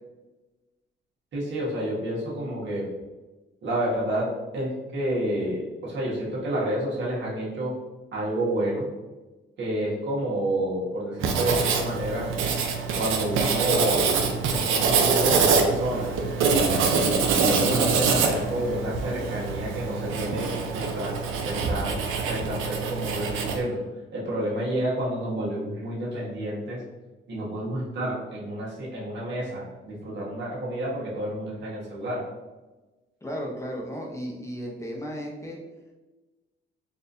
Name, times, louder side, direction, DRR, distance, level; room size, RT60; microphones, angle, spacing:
voice 1, 1.3-2.9 3.6-7.8 8.1-8.9 9.6-12.3 12.9-14.1 14.5-16.2 17.5-22.0 22.3-23.8 24.1-26.8 27.3-32.3, right 1 dB, 65° right, -5 dB, 1.4 m, -29 dB
Writing, 11.2-23.6, right 5 dB, 85° right, 0.5 m, -25 dB
voice 2, 33.2-35.6, equal, 15° left, -2 dB, 0.9 m, -34 dB
4.1 x 2.5 x 2.6 m, 1.2 s
cardioid pair, 90°, 20 cm